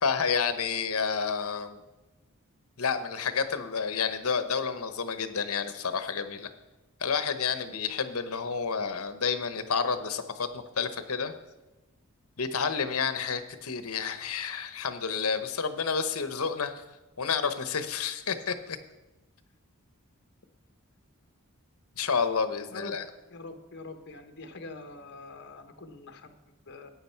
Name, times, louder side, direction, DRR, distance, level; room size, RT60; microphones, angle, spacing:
voice 1, 0.0-1.8 2.8-6.5 7.0-11.3 12.4-16.8 17.2-18.8 22.0-23.0, left 6 dB, 75° left, 10 dB, 0.9 m, -30 dB
voice 2, 23.3-26.9, left 2 dB, 50° left, 7 dB, 1.1 m, -44 dB
14.0 x 9.1 x 4.5 m, 1.1 s
head